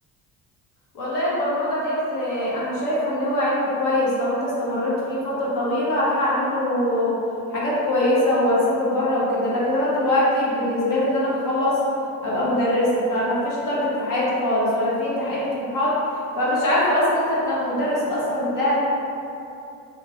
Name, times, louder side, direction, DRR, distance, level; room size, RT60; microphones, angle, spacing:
voice 1, 0.9-7.2 7.5-11.8 12.2-18.8, left 1 dB, 55° left, -7 dB, 1.1 m, -22 dB
3.1 x 2.4 x 3.8 m, 2.7 s
supercardioid pair, 90°, 37 cm